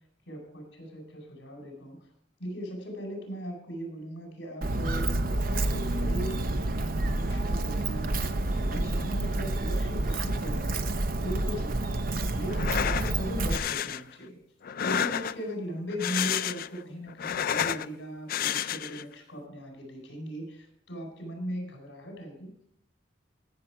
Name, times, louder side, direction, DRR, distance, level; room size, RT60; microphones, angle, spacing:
voice 1, 0.3-2.1 2.4-6.5 6.8-10.9 11.2-11.8 12.3-14.4 14.8-22.5, equal, 75° left, 1 dB, 4.6 m, -38 dB
Walk footsteps, 4.6-13.6, right 2 dB, 50° right, 0.7 m, -29 dB
sound 1, 12.5-13.1 13.5-14.0 14.6-15.5 15.9-16.8 17.1-17.9 18.3-19.0, left 9 dB, 50° left, 0.3 m, -30 dB
15.0 x 6.9 x 4.8 m, 0.72 s
head